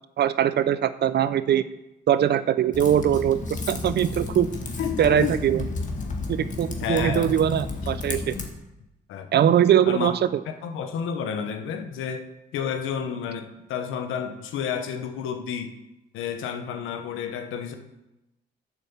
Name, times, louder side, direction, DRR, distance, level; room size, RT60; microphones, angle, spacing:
voice 1, 0.2-1.6 2.1-3.4 3.7-4.5 5.0-5.6 6.3-8.3 9.3-10.3, right 10 dB, 60° right, 14 dB, 0.6 m, -21 dB
Typing, 2.7-8.5, left 3 dB, 40° left, 1.9 m, -32 dB
voice 2, 4.8-5.4 6.8-7.3 9.1-9.3 9.9-10.1 10.4-12.2 12.5-15.8 16.1-17.8, left 7 dB, 85° left, 7 dB, 1.2 m, -30 dB
8.5 x 7.1 x 7.2 m, 0.94 s
cardioid pair, 90°, 20 cm